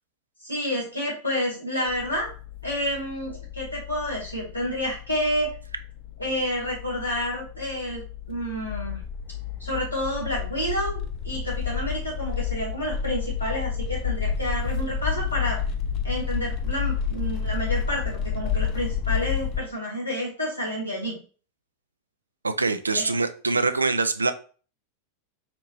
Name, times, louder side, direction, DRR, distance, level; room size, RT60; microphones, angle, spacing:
voice 1, 0.4-2.3 2.6-5.5 6.2-8.0 8.3-9.0 9.6-15.6 16.0-21.2 22.9-23.1, equal, 90° left, -4 dB, 2.1 m, -29 dB
sound 1, 1.9-19.6, left 7 dB, 40° left, 0.4 m, -30 dB
voice 2, 22.4-24.3, right 3 dB, 80° right, 10 dB, 0.3 m, -24 dB
4.2 x 2.8 x 3.0 m, 0.39 s
figure-of-eight pair, 90°, 0 cm